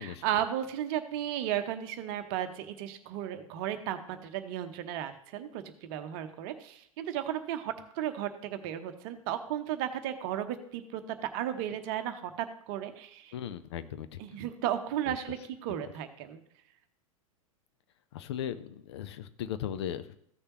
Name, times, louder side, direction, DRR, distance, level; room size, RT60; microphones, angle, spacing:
voice 1, 0.0-13.3 14.2-16.4, right 11 dB, 40° right, 9 dB, 0.9 m, -34 dB
voice 2, 13.3-14.2 15.1-15.2 18.1-20.1, left 10 dB, 50° left, 12 dB, 0.6 m, -37 dB
15.0 x 6.6 x 3.0 m, 0.70 s
figure-of-eight pair, 95°, 18 cm